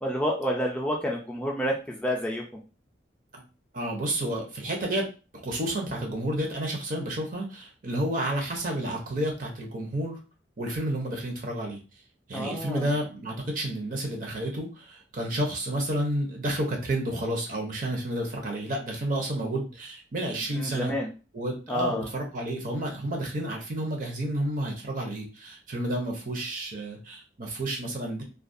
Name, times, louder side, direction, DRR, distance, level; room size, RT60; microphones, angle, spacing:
voice 1, 0.0-2.6 12.3-12.9 20.5-21.1 21.7-22.1, equal, 5° left, -2 dB, 0.3 m, -29 dB
voice 2, 3.7-5.1 5.4-10.2 10.6-11.8 12.3-20.9 21.3-28.2, right 1 dB, 45° right, 1 dB, 0.6 m, -30 dB
2.3 x 2.1 x 2.5 m, 0.33 s
head